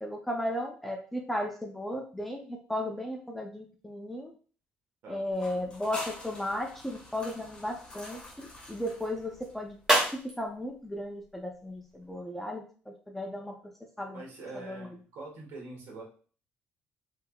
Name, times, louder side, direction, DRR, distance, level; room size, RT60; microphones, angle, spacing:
voice 1, 0.0-4.3 5.1-9.8 10.4-13.5 14.0-14.2 14.5-14.9, left 1 dB, 5° left, 1 dB, 0.5 m, -35 dB
sound 1, 5.3-9.9, left 1 dB, 20° left, 1.1 m, -46 dB
sound 2, 6.4-12.2, right 1 dB, 10° right, 1.1 m, -35 dB
voice 2, 14.1-16.0, right 3 dB, 65° right, -1 dB, 1.4 m, -44 dB
3.5 x 3.3 x 2.3 m, 0.40 s
cardioid pair, 155°, 4 cm